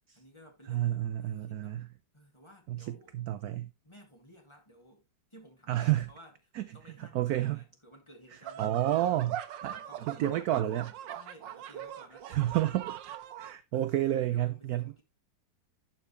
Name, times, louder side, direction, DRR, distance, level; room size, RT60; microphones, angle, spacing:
voice 1, 0.0-1.8 2.1-3.1 3.8-5.0 5.3-9.3 9.6-10.8 11.1-12.9 13.7-13.9 14.2-15.0, equal, 15° left, 2.2 m, -56 dB
voice 2, 0.7-1.9 2.7-3.7 5.7-6.1 6.6-6.7 7.1-7.6 8.6-9.4 9.6-9.7 10.1-10.9 12.3-14.8, right 13 dB, 70° right, 0.9 m, -30 dB
sound 1, 8.4-13.5, right 11 dB, 90° right, 1.4 m, -41 dB
11.5 x 4.7 x 3.1 m
omnidirectional pair, 1.9 m